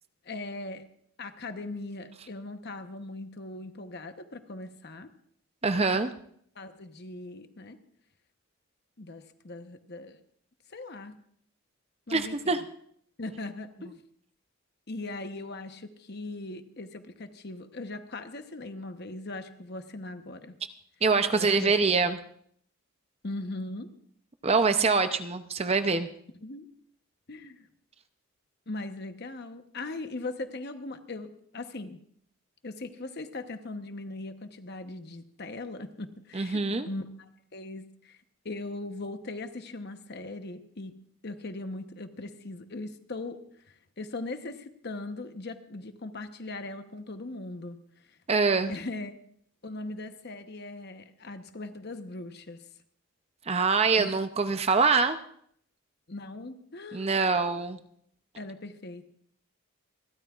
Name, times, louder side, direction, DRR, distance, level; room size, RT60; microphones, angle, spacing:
voice 1, 0.2-0.8 1.2-5.1 6.6-7.8 9.0-10.2 10.7-11.1 12.1-12.6 13.2-14.0 14.9-20.6 21.3-22.1 23.2-23.9 26.4-26.7 27.3-27.7 28.7-32.0 32.6-38.2 38.4-41.0 41.2-43.4 43.7-47.8 48.1-48.2 48.7-49.1 49.6-52.6 54.0-54.1 56.1-57.6 58.4-59.1, left 2 dB, 45° left, 8 dB, 1.0 m, -39 dB
voice 2, 5.6-6.1 12.1-12.6 21.0-22.2 24.4-26.1 36.3-36.9 48.3-48.7 53.5-55.2 56.9-57.8, right 4 dB, 25° right, 9 dB, 0.6 m, -24 dB
28.0 x 13.0 x 2.4 m, 0.64 s
head